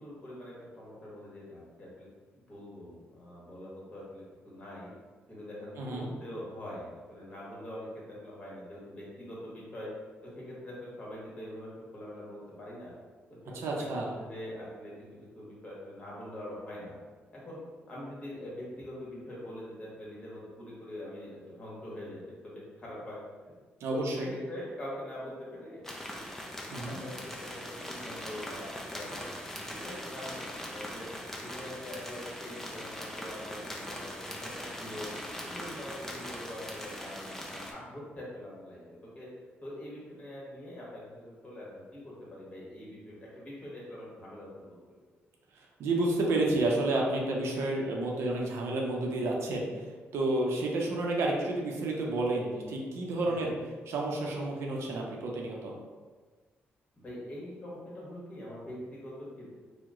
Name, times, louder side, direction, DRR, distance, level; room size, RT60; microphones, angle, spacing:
voice 1, 0.0-4.9 5.3-9.9 10.2-12.9 13.3-13.4 13.7-17.0 17.3-17.6 17.9-23.2 23.9-25.8 26.8-29.3 29.6-31.1 31.4-35.1 35.4-39.3 39.6-44.9 53.2-53.5 56.9-59.6, left 1 dB, 30° left, -6 dB, 1.3 m, -44 dB
voice 2, 5.8-6.1 13.5-14.2 23.8-24.3 26.7-27.0 45.6-49.9 50.1-53.5 53.9-55.8, right 2 dB, 75° right, -1 dB, 0.6 m, -30 dB
sound 1, 25.8-37.7, equal, 10° left, 0.5 m, -41 dB
2.9 x 2.1 x 3.6 m, 1.4 s
cardioid pair, 100°, 4 cm